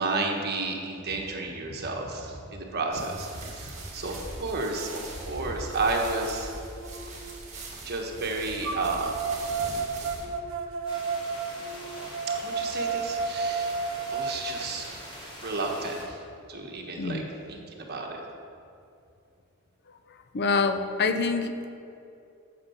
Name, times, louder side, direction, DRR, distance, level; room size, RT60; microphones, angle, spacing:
voice 1, 0.0-6.5 7.8-9.4 12.3-13.8 14.1-15.1 15.4-16.2 16.5-18.2, right 3 dB, 50° right, 1 dB, 1.3 m, -32 dB
sound 1, 2.9-10.3, right 2 dB, 35° right, 1.8 m, -41 dB
sound 2, 4.8-4.9 5.5-7.4 8.6-14.7, right 4 dB, 65° right, 0.7 m, -32 dB
sound 3, 10.9-16.0, equal, 25° left, 2.6 m, -43 dB
voice 2, 20.3-21.5, left 4 dB, 50° left, 9 dB, 0.5 m, -25 dB
8.8 x 7.6 x 5.7 m, 2.6 s
head